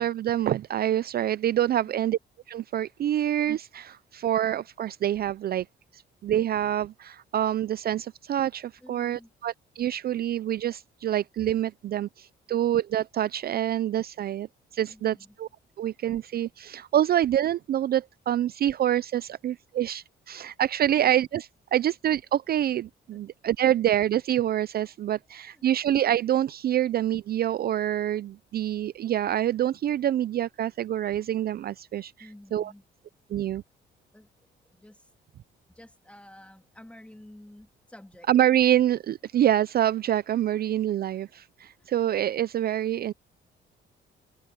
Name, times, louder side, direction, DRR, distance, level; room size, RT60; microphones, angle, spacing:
voice 1, 0.0-2.2 2.5-5.7 5.9-14.5 14.7-15.5 15.8-32.1 32.5-32.7 33.3-33.6 38.3-43.1, right 11 dB, 50° right, 0.4 m, -26 dB
voice 2, 1.6-2.1 8.8-9.3 14.9-15.4 20.9-21.0 23.1-23.2 25.4-25.6 32.2-32.8 34.1-34.3 34.6-35.1 35.7-38.3 38.8-38.9 40.5-40.6 41.8-42.0, left 1 dB, 5° left, 3.2 m, -51 dB
cardioid pair, 90°, 20 cm